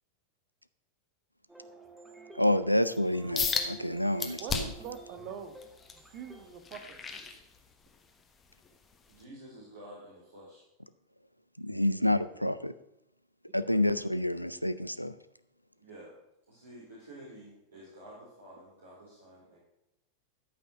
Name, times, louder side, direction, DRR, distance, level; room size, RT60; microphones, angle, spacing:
sound 1, 1.5-6.5, right 3 dB, 5° right, 1.6 m, -51 dB
voice 1, 2.4-4.7 11.6-12.7 13.5-15.1, left 1 dB, 90° left, 13 dB, 0.5 m, -28 dB
sound 2, 3.4-3.7 4.2-4.9 5.4-8.0 8.4-8.7 9.2-9.3, left 5 dB, 20° left, 1.3 m, -34 dB
voice 2, 4.4-5.6 5.9-7.0, right 7 dB, 40° right, 9 dB, 1.3 m, -44 dB
voice 3, 9.1-10.6 15.8-16.2 16.5-19.6, right 1 dB, 65° right, -6 dB, 3.7 m, -50 dB
12.5 x 5.8 x 6.5 m, 0.87 s
figure-of-eight pair, 90°, 0 cm